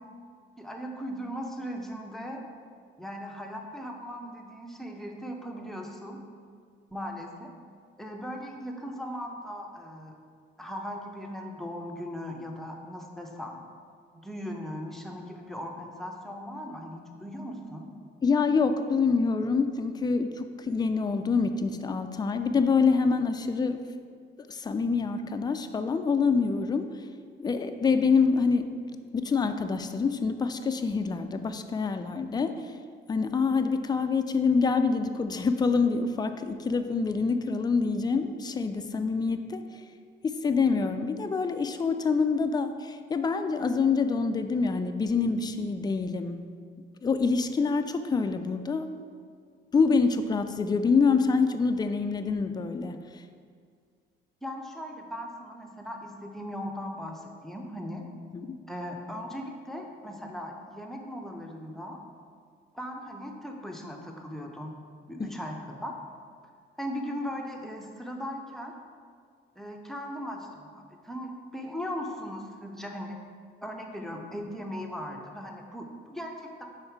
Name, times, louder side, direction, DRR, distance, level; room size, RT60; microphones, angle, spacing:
voice 1, 0.6-2.4 3.0-6.2 6.9-7.5 8.0-10.1 10.6-13.6 14.1-17.9 54.4-58.0 58.7-62.0 62.7-64.7 65.1-65.9 66.8-68.7 69.6-73.2 73.6-76.6, equal, ahead, 1 dB, 0.7 m, -38 dB
voice 2, 18.2-23.8 24.5-26.9 27.4-28.7 29.1-32.6 33.1-39.6 40.2-46.4 47.0-48.9 49.7-53.0 58.3-58.6 65.2-65.3, left 4 dB, 20° left, 8 dB, 0.4 m, -26 dB
5.4 x 3.9 x 4.6 m, 2.1 s
cardioid pair, 90°, 20 cm